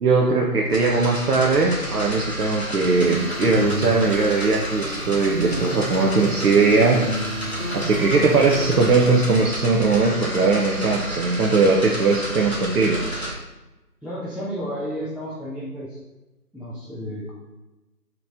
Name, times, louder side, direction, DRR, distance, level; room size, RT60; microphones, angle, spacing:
voice 1, 0.0-7.1 7.7-13.0, right 3 dB, 70° right, -2 dB, 0.5 m, -19 dB
sound 1, 0.7-13.3, equal, 40° left, 0.6 m, -31 dB
sound 2, 2.9-5.1 5.5-9.4, right 1 dB, 65° left, 0.9 m, -32 dB
voice 2, 14.0-16.0 16.5-17.3, equal, 5° right, -8 dB, 0.4 m, -32 dB
2.9 x 2.6 x 3.4 m, 1.0 s
figure-of-eight pair, 170°, 48 cm